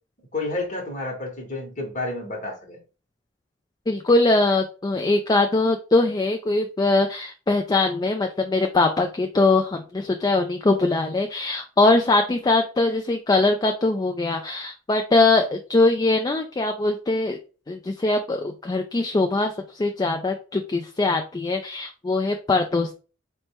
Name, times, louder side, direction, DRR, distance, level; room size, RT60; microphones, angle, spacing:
voice 1, 0.3-2.8, left 2 dB, 40° left, 1 dB, 1.2 m, -30 dB
voice 2, 3.9-17.4 17.7-22.9, left 2 dB, 20° left, 5 dB, 0.3 m, -22 dB
4.3 x 2.1 x 4.5 m, 0.35 s
head